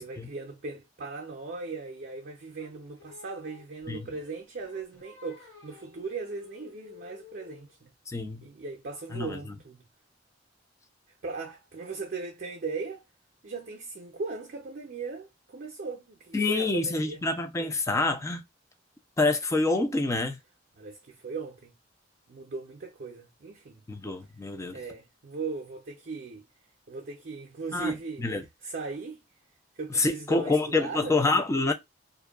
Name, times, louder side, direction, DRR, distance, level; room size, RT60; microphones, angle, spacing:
voice 1, 0.0-7.9 8.4-9.8 11.2-13.0 13.4-17.2 20.8-21.8 22.3-23.8 24.7-26.5 26.9-28.3 28.6-29.2 29.8-31.2, right 4 dB, 55° right, 0.5 m, -38 dB
Singing, 2.6-7.8, left 7 dB, 70° left, 1.0 m, -52 dB
voice 2, 8.1-8.5 9.1-9.4 16.3-18.4 19.2-20.4 23.9-24.8 27.7-28.4 29.9-31.7, left 3 dB, 15° left, 0.4 m, -27 dB
2.6 x 2.2 x 2.2 m
head